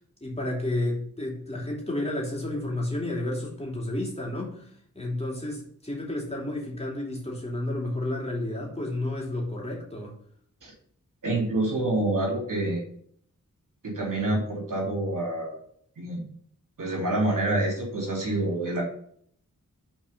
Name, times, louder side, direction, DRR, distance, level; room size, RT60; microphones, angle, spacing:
voice 1, 0.2-10.1, left 1 dB, 20° left, -2 dB, 3.0 m, -31 dB
voice 2, 11.2-12.8 13.8-15.6 16.0-16.2 16.8-18.8, right 2 dB, 75° right, -2 dB, 3.0 m, -27 dB
6.1 x 4.7 x 5.3 m, 0.63 s
cardioid pair, 60°, 32 cm